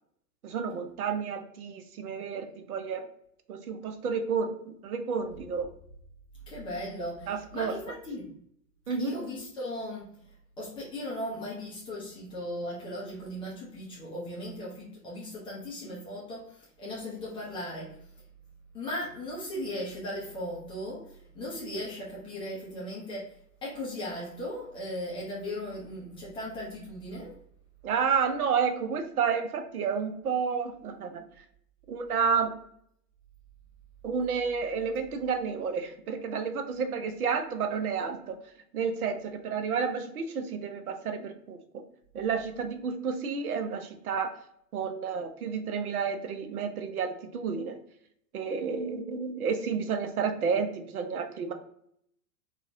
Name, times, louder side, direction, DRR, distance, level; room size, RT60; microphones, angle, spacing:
voice 1, 0.4-3.1 3.5-5.7 7.3-7.8 8.9-9.2 27.8-31.4 31.9-32.5 34.0-38.4 38.7-41.8 42.1-44.4 44.7-47.8 48.3-51.5, right 6 dB, 65° right, 7 dB, 0.6 m, -31 dB
voice 2, 6.5-8.3 9.0-10.1 10.6-17.9 18.7-21.1 21.3-23.3 23.6-27.3, left 1 dB, 10° left, -6 dB, 0.4 m, -37 dB
3.8 x 2.1 x 2.5 m, 0.70 s
figure-of-eight pair, 95°, 48 cm